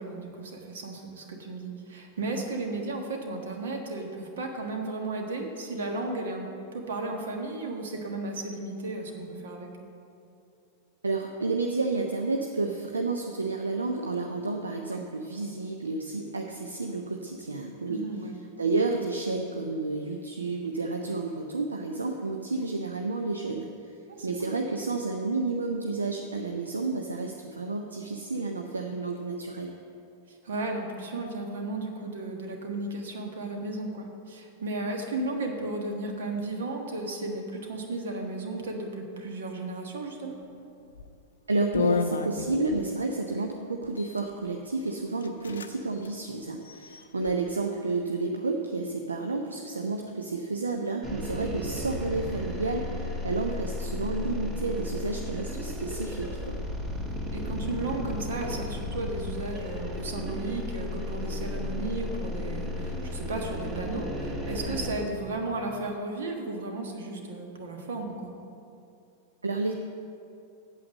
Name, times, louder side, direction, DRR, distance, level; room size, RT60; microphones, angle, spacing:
voice 1, 0.0-6.5 6.7-9.7 14.7-15.0 17.9-18.3 24.1-24.6 30.4-40.4 43.4-43.5 47.2-47.3 57.3-68.3, right 2 dB, 60° right, 3 dB, 1.5 m, -34 dB
voice 2, 11.0-18.0 18.6-23.9 24.2-29.7 41.5-56.6 69.4-69.7, right 3 dB, 75° right, 3 dB, 0.6 m, -31 dB
sound 1, 40.9-41.1 41.7-42.9 43.8-44.3 44.9-45.0 45.2-45.7 46.0-46.1 46.6-47.3, left 5 dB, 70° left, 0.5 m, -31 dB
sound 2, 51.0-64.9, left 1 dB, 35° right, 2.5 m, -34 dB
8.5 x 7.9 x 7.4 m, 2.6 s
figure-of-eight pair, 90°, 0 cm